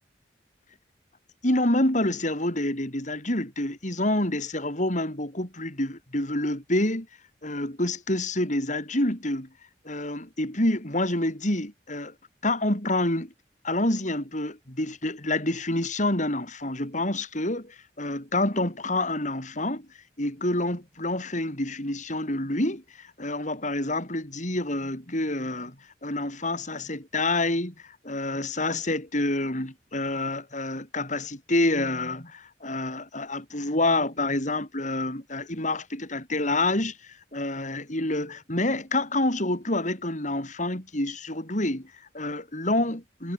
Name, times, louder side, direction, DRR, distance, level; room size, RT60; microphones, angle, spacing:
voice 1, 1.4-7.1 7.4-9.5 9.9-12.1 12.4-13.3 13.6-19.9 20.2-25.8 26.0-27.7 28.0-43.3, left 1 dB, 45° left, 7.0 m, -27 dB
head